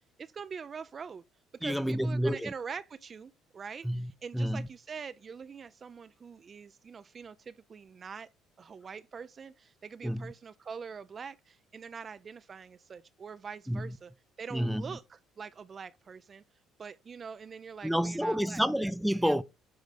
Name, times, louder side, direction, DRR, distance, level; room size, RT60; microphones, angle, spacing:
voice 1, 0.2-1.2 1.5-8.3 8.6-14.1 14.4-16.4 16.8-18.6 19.2-19.4, right 6 dB, 40° right, 0.5 m, -44 dB
voice 2, 1.6-2.5 3.8-4.7 10.0-10.3 13.7-14.0 14.5-14.9 17.8-19.4, equal, ahead, 0.6 m, -29 dB
9.3 x 3.9 x 5.0 m
hypercardioid pair, 65°, 0 cm